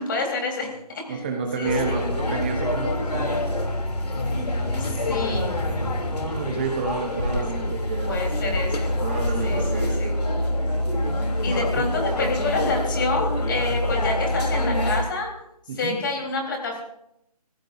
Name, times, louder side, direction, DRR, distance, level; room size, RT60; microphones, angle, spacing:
voice 1, 0.0-1.3 1.6-2.0 4.8-5.5 7.6-7.7 8.1-8.9 9.4-10.2 11.1-15.3 15.7-16.8, left 3 dB, 30° left, 0 dB, 4.1 m, -28 dB
voice 2, 1.1-3.5 6.2-8.6 9.0-10.5 10.9-11.9 15.7-16.0, right 5 dB, 15° right, 1 dB, 1.0 m, -31 dB
sound 1, 1.6-15.0, left 1 dB, 80° left, 3.2 m, -25 dB
26.0 x 15.5 x 2.7 m, 0.79 s
hypercardioid pair, 170°, 20 cm